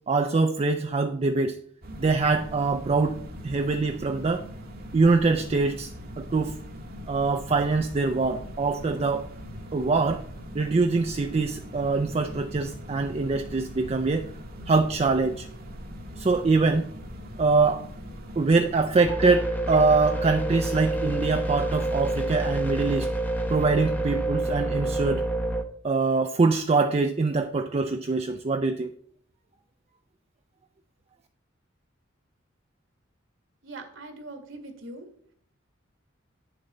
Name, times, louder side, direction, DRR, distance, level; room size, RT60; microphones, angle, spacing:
voice 1, 0.1-1.6 2.0-4.4 4.9-6.6 7.1-9.3 9.7-10.2 10.5-14.3 14.7-15.5 16.2-16.9 17.4-17.9 18.4-23.1 23.5-25.2 25.8-28.9, right 3 dB, 30° right, 6 dB, 0.4 m, -24 dB
sound 1, 1.8-19.1, equal, 50° right, 1.1 m, -41 dB
sound 2, 19.1-25.6, right 1 dB, 10° left, 0.7 m, -28 dB
voice 2, 33.6-35.1, right 2 dB, 70° right, 5 dB, 1.7 m, -41 dB
8.9 x 6.7 x 4.2 m, 0.63 s
head